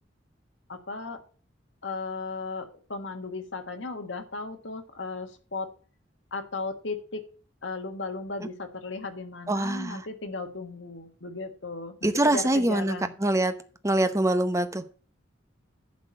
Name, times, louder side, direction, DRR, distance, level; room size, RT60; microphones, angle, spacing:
voice 1, 0.7-1.2 1.8-5.7 6.3-7.3 7.6-13.1, left 3 dB, 80° left, 1.6 m, -36 dB
voice 2, 9.5-10.1 12.0-13.5 13.8-14.8, right 1 dB, 15° right, 0.8 m, -24 dB
11.0 x 4.3 x 7.4 m
head